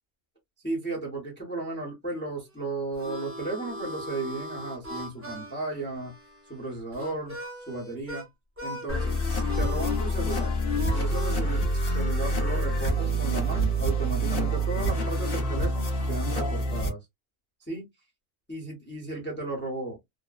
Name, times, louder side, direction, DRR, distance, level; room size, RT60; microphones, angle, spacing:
voice 1, 0.6-6.1 6.5-7.4 7.7-8.2 8.6-10.6 10.9-17.0 17.7-17.9 18.5-20.0, right 2 dB, 10° left, 0.8 m, -34 dB
Harmonica, 2.5-8.3 8.6-9.1 9.4-15.5, equal, 20° right, 0.4 m, -41 dB
sound 1, 8.9-16.9, right 1 dB, 45° left, 0.8 m, -26 dB
3.0 x 2.1 x 2.3 m
omnidirectional pair, 1.6 m